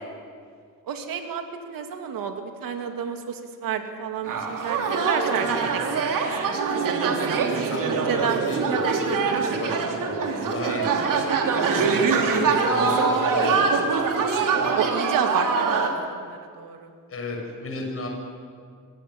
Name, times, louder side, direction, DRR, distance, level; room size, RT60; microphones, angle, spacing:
voice 1, 0.9-2.3 2.6-5.8 6.1-8.5 11.6-12.1 14.7-15.5 15.8-16.9, right 7 dB, 85° right, 5 dB, 2.7 m, -31 dB
sound 1, 4.3-15.9, right 5 dB, 70° right, 3.2 m, -23 dB
voice 2, 7.6-8.9 9.5-11.0 11.9-13.9 17.1-18.1, left 2 dB, 40° left, 1 dB, 6.6 m, -34 dB
25.0 x 17.5 x 9.5 m, 2.1 s
cardioid pair, 130°, 33 cm